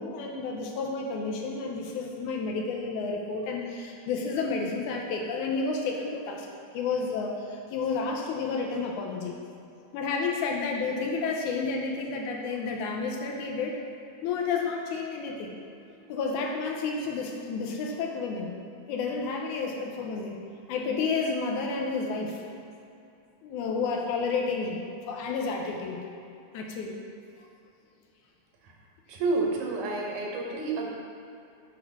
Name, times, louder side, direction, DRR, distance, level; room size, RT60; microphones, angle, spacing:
voice 1, 0.0-6.5 6.7-9.4 9.9-13.8 14.2-15.6 16.1-18.6 18.9-20.4 20.7-22.4 23.4-26.0 26.5-27.0, left 4 dB, 90° left, 1 dB, 2.2 m, -31 dB
voice 2, 29.1-30.9, right 3 dB, 85° right, -1 dB, 2.5 m, -29 dB
7.4 x 3.6 x 5.9 m, 2.6 s
omnidirectional pair, 3.4 m